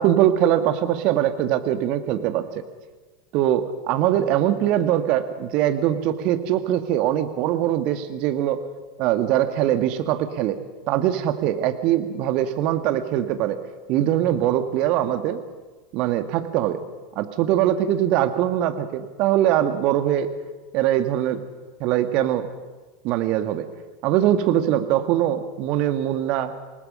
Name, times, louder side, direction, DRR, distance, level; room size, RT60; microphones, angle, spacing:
voice 1, 0.0-2.5 3.3-8.6 9.0-10.6 10.9-13.6 13.9-15.4 15.9-16.8 17.2-20.3 20.7-21.4 21.8-22.5 23.0-23.7 24.0-26.5, right 11 dB, 45° right, 9 dB, 1.7 m, -22 dB
27.0 x 19.5 x 5.6 m, 1.3 s
figure-of-eight pair, 80°, 2 cm